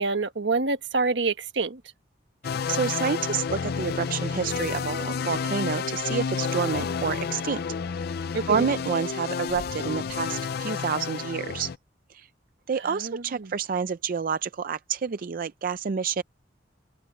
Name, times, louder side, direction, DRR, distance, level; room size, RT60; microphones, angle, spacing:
voice 1, 0.0-1.8 8.3-8.7 12.9-13.5, right 3 dB, 75° right, 1.3 m, -27 dB
sound 1, 2.4-11.8, left 6 dB, 60° left, 0.5 m, -30 dB
voice 2, 2.7-7.6 7.9-11.7 12.1-12.3 12.7-16.2, right 6 dB, 50° right, 0.4 m, -29 dB
head